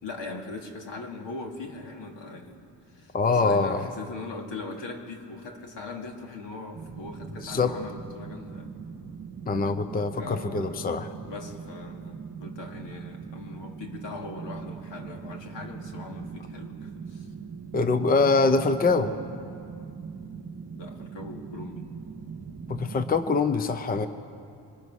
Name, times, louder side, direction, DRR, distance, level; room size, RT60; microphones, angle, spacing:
voice 1, 0.0-2.6 2.9-8.7 10.2-10.9 11.2-17.3 20.8-21.9, left 3 dB, 80° left, 2 dB, 2.7 m, -40 dB
voice 2, 3.1-3.9 7.4-7.7 9.5-11.1 17.7-19.1 22.7-24.1, left 4 dB, 20° left, 10 dB, 0.7 m, -24 dB
sound 1, 6.7-23.3, right 6 dB, 35° right, 1.6 m, -41 dB
26.0 x 23.5 x 6.4 m, 2.5 s
wide cardioid pair, 170°, 43 cm